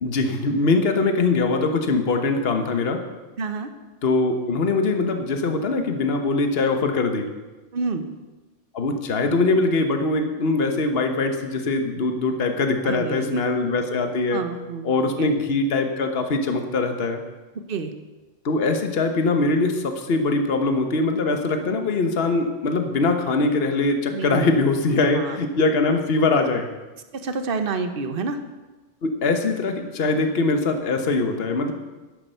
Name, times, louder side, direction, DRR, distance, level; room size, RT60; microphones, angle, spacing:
voice 1, 0.0-3.0 4.0-7.3 8.7-14.4 14.8-17.2 18.4-26.7 29.0-31.7, left 3 dB, 50° left, 6 dB, 1.3 m, -22 dB
voice 2, 3.4-3.7 7.7-8.0 12.8-13.4 14.3-14.9 15.2-15.3 17.5-17.9 24.1-24.6 25.0-25.4 27.1-28.4, right 4 dB, 50° right, 9 dB, 1.1 m, -28 dB
10.5 x 9.8 x 6.7 m, 1.2 s
omnidirectional pair, 1.3 m